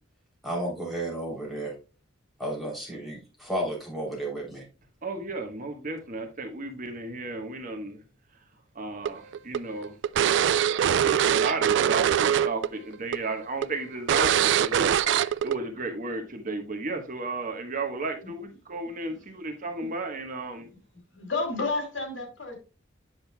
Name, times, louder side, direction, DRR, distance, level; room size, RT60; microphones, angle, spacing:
voice 1, 0.4-1.7 2.4-4.6, right 1 dB, ahead, 3.1 m, -32 dB
voice 2, 5.0-8.0 8.7-9.9 10.9-20.7, right 3 dB, 45° right, 1.1 m, -34 dB
sound 1, 9.1-12.7 12.9-13.2 13.6-13.7 14.1-15.5, right 9 dB, 65° right, 0.3 m, -23 dB
voice 3, 21.1-22.5, left 3 dB, 70° left, 2.9 m, -30 dB
8.9 x 6.5 x 2.2 m
head